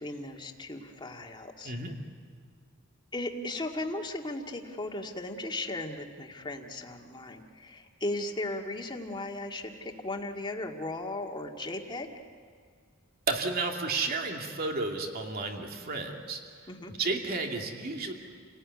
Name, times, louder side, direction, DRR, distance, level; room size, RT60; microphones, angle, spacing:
voice 1, 0.0-1.7 3.1-12.1 16.7-16.9, left 2 dB, 20° left, 2 dB, 2.0 m, -36 dB
voice 2, 1.6-1.9 13.3-16.4 16.9-18.1, right 3 dB, 45° right, 2 dB, 2.5 m, -32 dB
29.0 x 18.0 x 9.5 m, 2.1 s
head